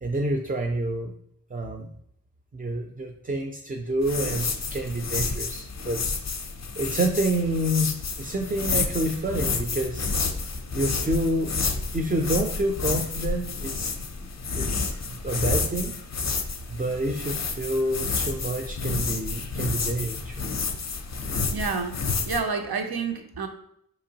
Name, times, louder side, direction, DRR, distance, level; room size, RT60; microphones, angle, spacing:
voice 1, 0.0-1.1 1.5-1.9 2.5-6.0 6.8-7.9 8.2-10.1 10.7-11.5 11.9-13.9 14.6-16.0 16.7-20.4, right 1 dB, 25° right, 4 dB, 0.4 m, -28 dB
sound 1, 4.0-22.4, left 4 dB, 45° left, 0.5 m, -30 dB
voice 2, 21.5-23.5, right 5 dB, 80° right, 6 dB, 0.6 m, -29 dB
4.4 x 2.9 x 2.8 m, 0.71 s
wide cardioid pair, 65°, 37 cm